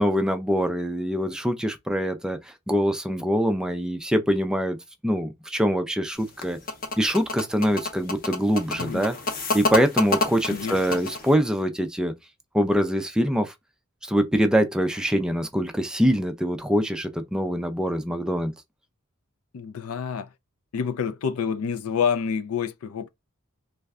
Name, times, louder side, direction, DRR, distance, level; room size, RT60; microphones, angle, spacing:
voice 1, 0.0-4.8 5.0-6.6 7.0-9.2 9.5-12.1 12.5-13.5 14.0-18.5, equal, 5° right, 0.4 m, -24 dB
sound 1, 6.2-11.3, left 3 dB, 40° left, 0.7 m, -28 dB
voice 2, 10.5-11.0 19.5-20.3 20.7-23.1, left 6 dB, 75° left, 0.4 m, -28 dB
3.3 x 2.2 x 3.5 m
head